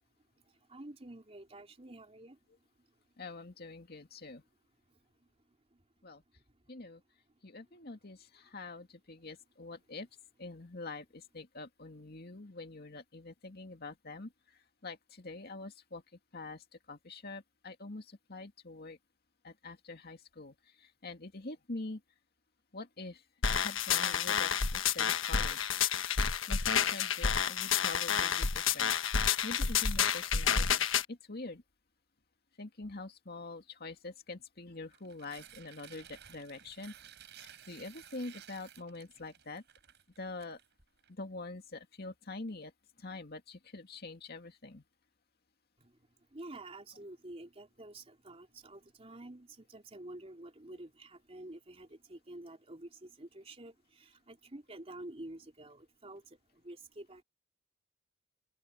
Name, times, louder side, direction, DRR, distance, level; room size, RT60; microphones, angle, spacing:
voice 1, 0.7-2.4 5.2-5.3 5.7-5.8 45.8-45.9 46.3-57.2, right 1 dB, 30° right, 3.1 m, -49 dB
voice 2, 3.2-4.4 6.0-6.2 6.7-7.0 7.4-10.1 10.4-16.0 16.3-19.0 19.4-22.0 22.7-25.8 26.5-29.0 29.4-31.6 32.6-36.9 37.4-39.6 40.2-40.6 41.1-42.7 43.0-44.8 50.7-50.8, left 3 dB, 55° left, 2.3 m, -45 dB
sound 1, 23.4-31.0, left 7 dB, 85° left, 1.3 m, -30 dB
Tearing, 34.8-41.1, right 9 dB, 60° right, 6.4 m, -55 dB
open air
head